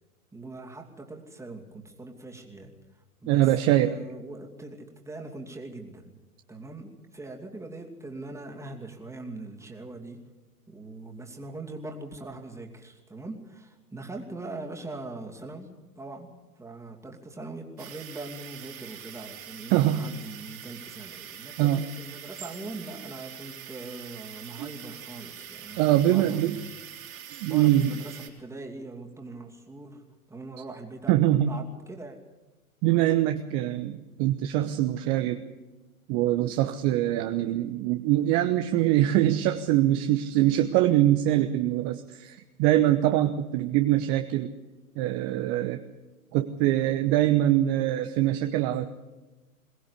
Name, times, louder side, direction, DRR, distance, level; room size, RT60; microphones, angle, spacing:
voice 1, 0.3-6.2 6.5-10.3 10.7-26.8 27.4-31.1 31.5-32.2, right 2 dB, 5° right, 2 dB, 2.6 m, -42 dB
voice 2, 3.3-4.0 19.7-20.2 21.6-21.8 24.6-24.7 25.8-26.6 27.3-28.0 31.1-31.6 32.8-35.4 36.1-44.5 45.0-45.8 46.3-48.9, right 13 dB, 30° right, 8 dB, 1.0 m, -23 dB
sound 1, 17.8-28.3, right 9 dB, 65° right, 4.5 m, -44 dB
22.0 x 18.0 x 8.4 m, 1.1 s
figure-of-eight pair, 110°, 44 cm